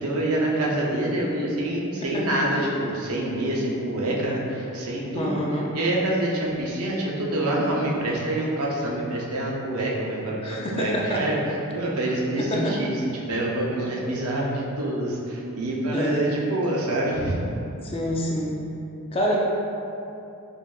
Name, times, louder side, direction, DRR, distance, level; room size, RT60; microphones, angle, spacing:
voice 1, 0.0-5.4 5.7-11.4 11.7-13.0 13.3-17.4, right 1 dB, 85° right, -3 dB, 0.7 m, -26 dB
voice 2, 5.1-5.7 10.4-11.2 12.4-12.8 15.9-16.4 17.8-18.5 19.1-19.4, equal, 25° left, -3 dB, 0.4 m, -26 dB
5.0 x 2.6 x 2.4 m, 2.7 s
head